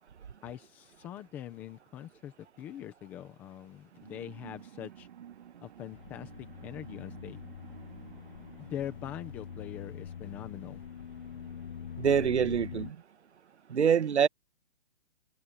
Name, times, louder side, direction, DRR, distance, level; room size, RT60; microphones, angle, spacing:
voice 1, 0.4-5.1 5.6-7.4 8.6-10.8, left 11 dB, 5° left, 0.7 m, -43 dB
sound 1, 3.9-12.1, right 10 dB, 45° right, 3.4 m, -53 dB
sound 2, 5.9-12.9, left 8 dB, 55° left, 1.1 m, -44 dB
voice 2, 12.0-13.0 13.7-14.3, right 7 dB, 85° right, 1.4 m, -25 dB
hypercardioid pair, 170°, 33 cm